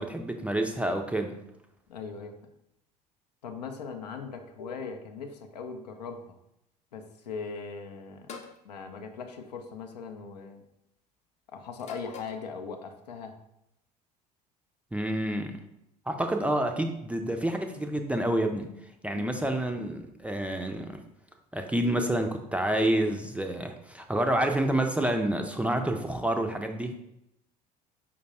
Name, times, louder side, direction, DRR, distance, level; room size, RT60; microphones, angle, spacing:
voice 1, 0.0-1.4 14.9-15.6 16.1-18.7 19.0-21.0 21.5-27.0, right 1 dB, 5° right, 4 dB, 0.4 m, -28 dB
voice 2, 1.9-2.4 3.4-6.4 6.9-8.3 8.6-10.6 11.5-13.4 19.1-19.4, left 5 dB, 75° left, 6 dB, 0.6 m, -39 dB
sound 1, 8.3-8.6 9.8-10.1 11.8-12.5, left 6 dB, 35° left, 0.6 m, -44 dB
5.1 x 2.2 x 4.2 m, 0.83 s
figure-of-eight pair, 65°, 21 cm